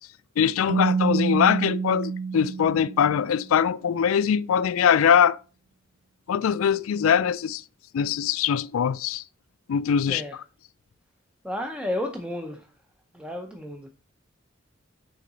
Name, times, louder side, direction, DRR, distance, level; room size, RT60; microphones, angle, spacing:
voice 1, 0.4-5.4 6.3-7.6 7.9-9.2 9.7-10.2, left 8 dB, 80° left, 0.4 m, -22 dB
Keyboard (musical), 0.7-3.4, right 5 dB, 60° right, 0.4 m, -27 dB
voice 2, 11.4-12.6 13.1-13.9, left 1 dB, 5° right, 0.6 m, -32 dB
7.5 x 4.7 x 4.0 m
head